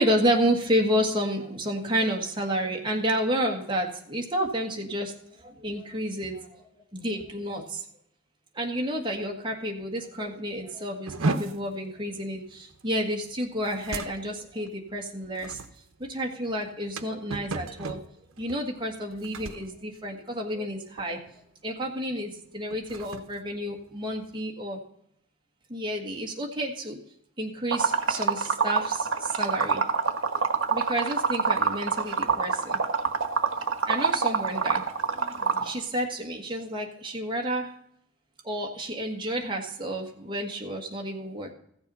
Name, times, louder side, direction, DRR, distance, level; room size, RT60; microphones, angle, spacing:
voice 1, 0.0-7.8 8.5-15.6 16.0-18.0 18.4-21.2 21.6-24.8 25.7-27.0 27.4-29.8 30.7-32.8 33.9-34.8 35.1-37.7 38.4-41.5, equal, 20° right, 1 dB, 1.6 m, -30 dB
sound 1, 11.1-20.7 21.0-21.4 21.7-22.0 22.6-24.5, right 3 dB, 85° right, 0.8 m, -36 dB
Liquid, 27.7-35.7, right 5 dB, 65° right, 1.2 m, -25 dB
15.0 x 7.0 x 5.5 m, 0.72 s
head